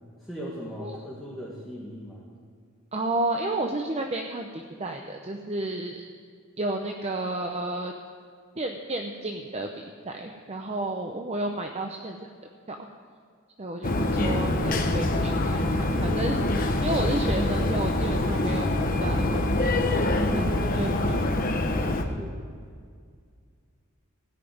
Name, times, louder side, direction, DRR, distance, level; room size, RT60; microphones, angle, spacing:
voice 1, 0.2-2.2 21.7-22.4, equal, ahead, -8 dB, 1.8 m, -39 dB
voice 2, 2.9-6.0 6.6-7.9 8.6-12.2 12.7-12.9 13.6-18.7 19.0-21.2, right 2 dB, 30° right, 3 dB, 0.7 m, -32 dB
sound 1, 13.8-22.0, left 2 dB, 40° left, 0.9 m, -25 dB
17.0 x 5.9 x 9.3 m, 2.1 s
head